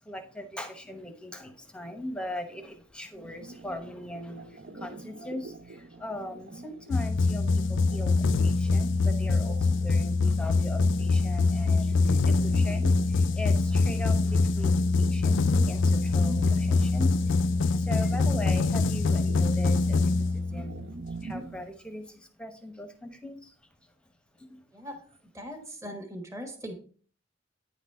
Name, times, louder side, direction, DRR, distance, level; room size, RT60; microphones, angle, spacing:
voice 1, 0.0-20.8 21.2-23.5 23.8-23.9 24.3-24.6, left 1 dB, 5° left, 6 dB, 0.9 m, -40 dB
sound 1, 3.2-21.6, right 3 dB, 55° right, 0.5 m, -45 dB
sound 2, 6.9-20.8, left 3 dB, 65° left, 0.4 m, -24 dB
voice 2, 25.3-26.7, equal, 15° right, 3 dB, 1.2 m, -39 dB
9.7 x 4.0 x 5.4 m, 0.43 s
head